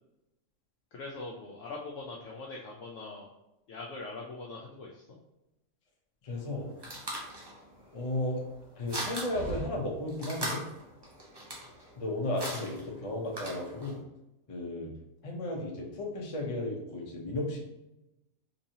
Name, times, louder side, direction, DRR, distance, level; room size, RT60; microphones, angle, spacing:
voice 1, 0.9-3.3 3.7-5.0, left 3 dB, 65° left, -2 dB, 0.8 m, -42 dB
voice 2, 6.2-6.7 7.9-8.4 8.8-10.6 12.0-14.0 14.5-14.9 15.2-17.6, left 1 dB, 45° left, -1 dB, 0.4 m, -34 dB
sound 1, 6.3-14.0, right 1 dB, 35° right, 0.4 m, -40 dB
3.9 x 2.7 x 2.7 m, 0.93 s
omnidirectional pair, 1.5 m